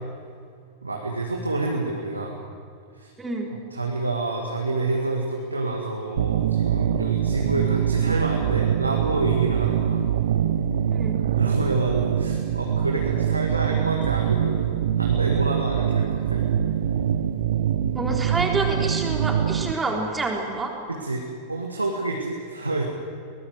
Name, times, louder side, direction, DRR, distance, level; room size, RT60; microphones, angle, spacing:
voice 1, 0.8-2.4 2.9-3.1 3.7-10.0 11.4-16.4 20.9-22.8, right 2 dB, 80° right, 1 dB, 2.1 m, -28 dB
voice 2, 3.2-3.5 10.9-11.2 17.9-20.7, right 3 dB, 15° right, 1 dB, 3.9 m, -27 dB
sound 1, 6.2-19.7, right 9 dB, 60° right, 0.8 m, -24 dB
22.5 x 19.0 x 7.9 m, 2.3 s
figure-of-eight pair, 90°, 0 cm